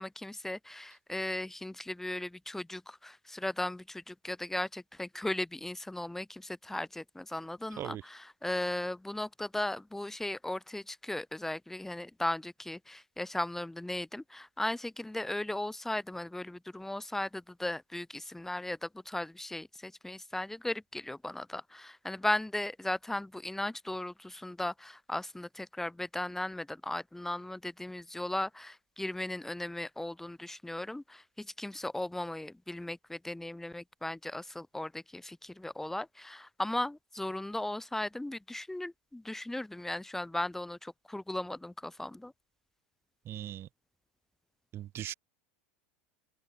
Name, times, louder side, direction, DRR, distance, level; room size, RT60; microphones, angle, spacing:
voice 1, 0.0-42.3, left 1 dB, 5° left, 2.9 m, -37 dB
voice 2, 43.3-43.7 44.7-45.1, right 12 dB, 40° right, 2.1 m, -39 dB
hypercardioid pair, 100°, 6 cm